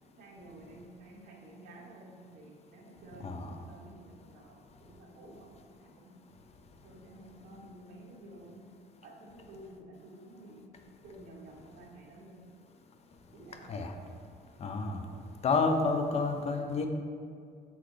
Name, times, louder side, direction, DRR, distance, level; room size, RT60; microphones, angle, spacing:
voice 1, 0.2-6.2 6.8-8.7 9.0-10.7 11.0-12.5 13.3-13.7, right 1 dB, 55° right, -3 dB, 1.3 m, -52 dB
voice 2, 14.6-15.0 15.4-16.9, left 4 dB, 40° left, 6 dB, 0.7 m, -29 dB
7.1 x 6.1 x 3.3 m, 2.3 s
cardioid pair, 110°, 17 cm